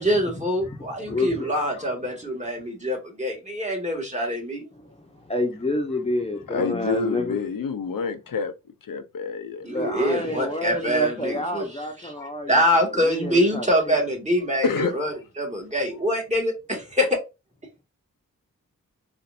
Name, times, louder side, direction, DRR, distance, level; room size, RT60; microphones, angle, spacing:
voice 1, 0.0-4.6 9.6-11.7 12.0-17.1, equal, 20° right, 1.7 m, -25 dB
voice 2, 0.6-1.5 4.7-7.4 9.7-13.9, left 1 dB, 20° left, 0.8 m, -29 dB
voice 3, 6.5-8.5 8.9-10.2 14.6-14.9, left 5 dB, 80° left, 0.6 m, -28 dB
4.2 x 2.5 x 2.5 m
cardioid pair, 45°, 33 cm